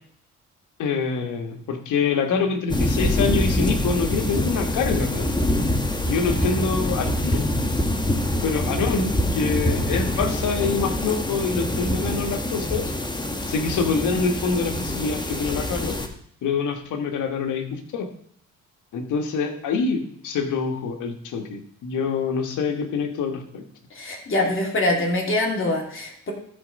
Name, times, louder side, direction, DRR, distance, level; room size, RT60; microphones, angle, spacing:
voice 1, 0.8-5.4 6.1-7.4 8.4-12.9 13.5-16.0 16.4-18.1 18.9-23.6, left 5 dB, 80° left, 5 dB, 1.5 m, -26 dB
sound 1, 2.7-16.1, left 1 dB, 15° left, 1.2 m, -25 dB
voice 2, 23.9-26.3, left 1 dB, 45° left, -1 dB, 2.9 m, -24 dB
13.5 x 4.5 x 5.2 m, 0.67 s
cardioid pair, 90°, 30 cm